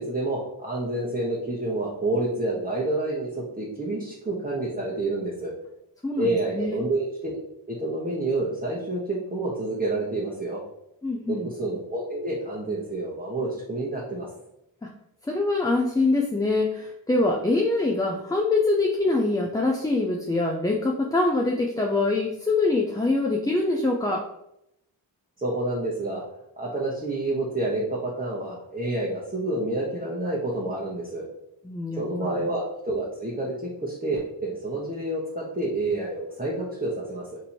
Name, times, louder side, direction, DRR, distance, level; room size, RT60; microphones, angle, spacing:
voice 1, 0.0-5.5 6.2-7.4 7.7-10.6 11.3-14.3 25.4-26.2 26.6-31.2 32.0-37.4, right 2 dB, 15° right, -6 dB, 1.0 m, -28 dB
voice 2, 6.0-6.8 11.0-11.5 14.8-14.9 15.2-24.3 31.6-32.0 32.3-32.5, left 2 dB, 10° left, 1 dB, 0.4 m, -24 dB
3.0 x 2.6 x 4.3 m, 0.80 s
supercardioid pair, 40°, 50 cm